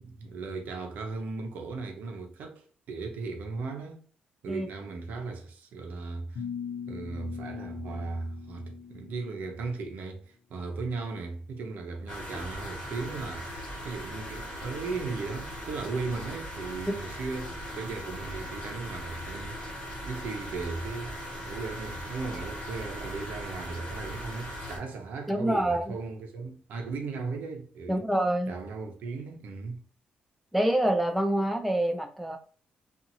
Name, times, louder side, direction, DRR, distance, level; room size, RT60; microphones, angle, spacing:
voice 1, 0.0-4.0 4.4-6.4 6.9-21.1 21.4-28.0 28.5-29.8, right 4 dB, 70° right, 0.6 m, -37 dB
sound 1, 6.3-9.5, left 7 dB, 65° left, 0.5 m, -40 dB
sound 2, 12.1-24.8, equal, 35° left, 1.4 m, -39 dB
voice 2, 25.3-25.8 27.9-28.5 30.5-32.4, right 1 dB, ahead, 0.3 m, -26 dB
2.7 x 2.4 x 2.6 m
cardioid pair, 150°, 3 cm